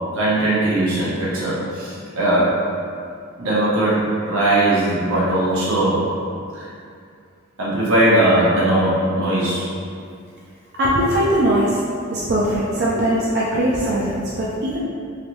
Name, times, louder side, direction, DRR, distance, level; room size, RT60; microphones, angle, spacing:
voice 1, 0.0-2.6 3.4-6.1 6.5-6.7 7.6-9.7, right 1 dB, 85° right, -8 dB, 1.0 m, -19 dB
voice 2, 10.8-11.8 12.1-14.8, right 1 dB, 55° right, -6 dB, 0.4 m, -20 dB
3.3 x 2.6 x 3.0 m, 2.3 s
head